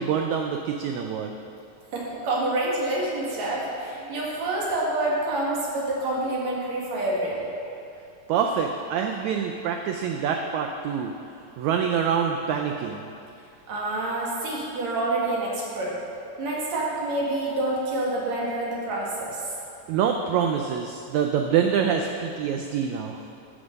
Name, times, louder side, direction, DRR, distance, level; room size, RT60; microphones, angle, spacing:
voice 1, 0.0-1.4 8.3-11.1 11.6-13.1 19.9-23.2, right 7 dB, 90° right, 3 dB, 1.6 m, -25 dB
voice 2, 1.9-7.5 13.7-15.9 16.4-19.4, right 2 dB, 55° right, -4 dB, 2.9 m, -27 dB
12.0 x 6.9 x 5.3 m, 2.7 s
omnidirectional pair, 4.0 m